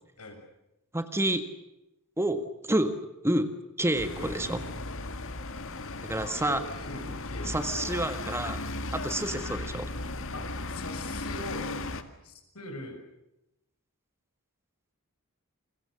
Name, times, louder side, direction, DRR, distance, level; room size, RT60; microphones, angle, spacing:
voice 1, 0.9-1.4 2.2-2.9 3.2-3.5 3.8-4.6 6.0-6.6 7.5-8.6 8.9-9.9, right 1 dB, 10° right, 9 dB, 1.7 m, -28 dB
sound 1, 3.9-12.0, left 2 dB, 60° left, 2.0 m, -36 dB
voice 2, 6.1-7.9 10.3-11.7 12.2-13.0, left 1 dB, 85° left, 5 dB, 6.7 m, -42 dB
29.5 x 23.0 x 6.6 m, 0.90 s
head